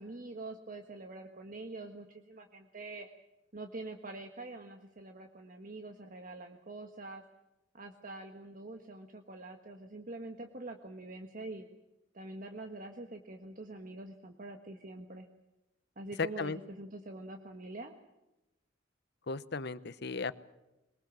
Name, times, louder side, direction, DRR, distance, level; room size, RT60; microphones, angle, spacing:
voice 1, 0.0-3.1 3.5-7.2 7.7-11.7 12.1-15.3 15.9-17.9, right 2 dB, 45° right, 5 dB, 1.5 m, -45 dB
voice 2, 16.2-16.6 19.3-20.3, left 4 dB, 60° left, 15 dB, 0.9 m, -35 dB
23.0 x 21.5 x 7.4 m, 0.97 s
head